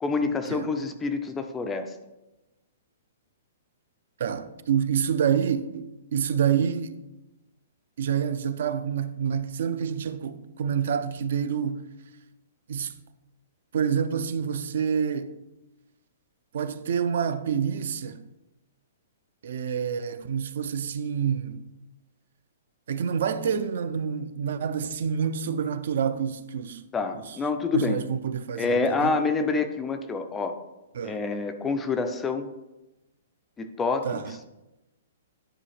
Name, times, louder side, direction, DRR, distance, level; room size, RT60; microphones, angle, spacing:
voice 1, 0.0-2.0 26.9-28.0 28.6-30.6 31.0-32.5 33.6-34.4, left 4 dB, 10° left, 0.3 m, -27 dB
voice 2, 4.2-7.0 8.0-11.9 12.7-12.9 13.7-15.3 16.5-18.3 19.4-21.7 22.9-26.8 27.7-28.7 29.0-29.1 30.9-31.2 34.0-34.2, right 7 dB, 55° right, 0.4 m, -27 dB
9.9 x 5.5 x 3.2 m
hypercardioid pair, 175°, 0 cm